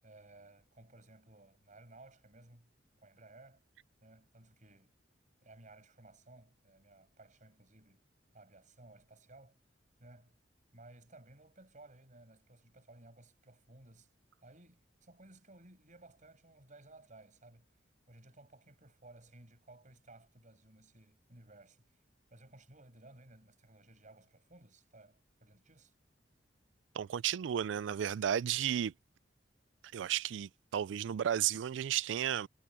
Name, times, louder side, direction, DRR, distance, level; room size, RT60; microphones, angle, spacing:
voice 1, 0.0-2.7 3.0-3.6 4.0-5.0 5.4-8.1 8.3-9.6 10.0-10.4 10.7-14.1 14.4-17.7 18.1-22.0 22.3-25.9, right 2 dB, 45° right, 7.1 m, -58 dB
voice 2, 26.9-28.9 29.9-32.5, right 10 dB, 80° right, 0.3 m, -33 dB
head